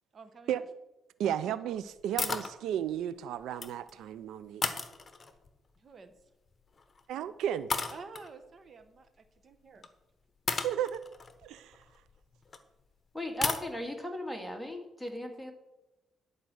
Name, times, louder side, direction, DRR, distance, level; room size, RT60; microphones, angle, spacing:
voice 1, 0.1-0.6 1.2-1.3 5.8-6.2 7.9-9.9, right 4 dB, 45° right, 10 dB, 1.1 m, -50 dB
voice 2, 1.2-4.6 7.1-7.7 10.6-11.0 11.4-11.8, right 10 dB, 85° right, 15 dB, 0.4 m, -33 dB
sound 1, 2.2-2.5 3.4-3.9 4.6-5.5 6.8-7.0 7.7-8.3 9.8-9.9 10.5-12.6 13.4-13.6, left 4 dB, 35° left, 1.2 m, -34 dB
voice 3, 13.1-15.5, left 1 dB, ahead, 2 dB, 2.1 m, -37 dB
11.5 x 5.1 x 7.6 m, 0.99 s
cardioid pair, 90°, 0 cm